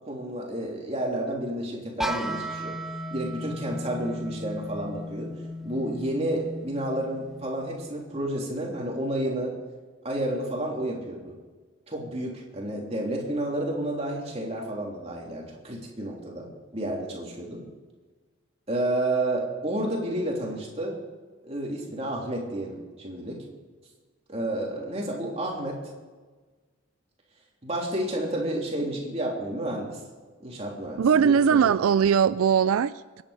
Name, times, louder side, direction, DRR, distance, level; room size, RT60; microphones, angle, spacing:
voice 1, 0.0-2.7 3.1-5.3 5.6-9.5 10.0-11.3 11.9-16.5 16.7-17.7 18.7-21.0 21.5-23.4 24.3-25.8 27.6-30.0 30.4-31.7, right 1 dB, 30° right, -2 dB, 3.4 m, -30 dB
sound 1, 2.0-7.8, equal, ahead, 0.8 m, -35 dB
voice 2, 31.0-33.2, right 7 dB, 85° right, 16 dB, 0.4 m, -21 dB
24.0 x 10.5 x 5.1 m, 1.4 s
head